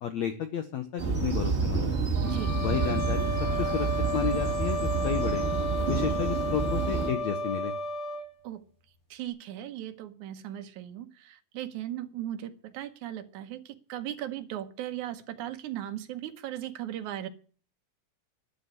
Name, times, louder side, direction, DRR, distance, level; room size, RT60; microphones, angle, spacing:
voice 1, 0.0-2.0 2.6-3.3 3.6-3.9 4.1-5.4 5.9-7.7, left 8 dB, 80° left, 8 dB, 1.6 m, -32 dB
sound 1, 1.0-7.1, right 4 dB, 30° right, 1.2 m, -29 dB
sound 2, 2.2-8.3, equal, 20° left, 3.8 m, -33 dB
voice 2, 2.2-2.6 8.4-8.6 9.1-17.3, right 12 dB, 75° right, 8 dB, 1.8 m, -37 dB
12.0 x 8.5 x 9.6 m, 0.44 s
omnidirectional pair, 4.5 m